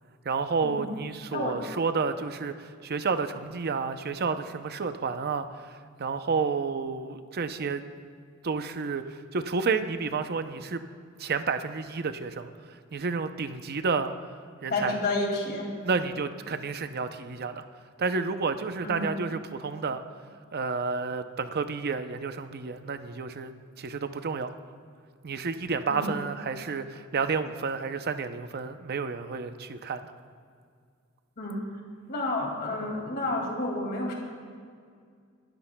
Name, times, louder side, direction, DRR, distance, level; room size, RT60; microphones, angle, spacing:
voice 1, 0.2-7.8 8.4-10.8 11.2-14.1 14.6-15.0 15.8-17.6 18.0-20.0 20.5-23.5 23.8-24.6 25.2-30.1, right 4 dB, 50° right, 9 dB, 0.6 m, -30 dB
voice 2, 14.7-15.7 18.8-19.1 25.9-26.1 31.4-31.6 32.1-34.1, left 2 dB, 50° left, 0 dB, 2.2 m, -30 dB
20.5 x 13.0 x 2.2 m, 2.1 s
head